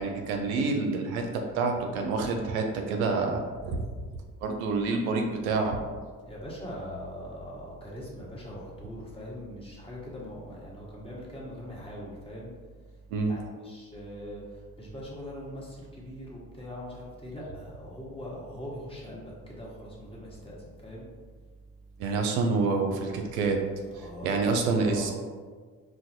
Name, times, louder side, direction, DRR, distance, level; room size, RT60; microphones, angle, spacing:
voice 1, 0.0-3.8 4.4-5.8 13.1-13.3 22.0-23.6 24.0-25.1, right 4 dB, 80° right, 3 dB, 0.5 m, -27 dB
voice 2, 6.2-21.1 23.9-24.4 24.7-25.1, equal, 15° left, -5 dB, 1.3 m, -41 dB
4.4 x 2.1 x 2.6 m, 1.5 s
hypercardioid pair, 55°, 42 cm